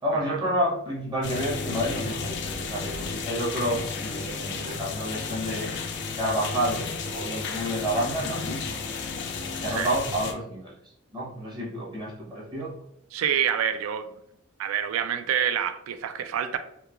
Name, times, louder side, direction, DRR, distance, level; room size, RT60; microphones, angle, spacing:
voice 1, 0.0-5.7 6.2-8.6 9.1-9.2 9.5-10.7 11.1-12.7, equal, 20° right, 0.7 m, -29 dB
sound 1, 1.2-10.3, left 4 dB, 55° left, 0.4 m, -33 dB
voice 2, 13.1-14.1 14.6-16.6, right 9 dB, 75° right, 0.3 m, -27 dB
3.0 x 2.3 x 2.3 m
head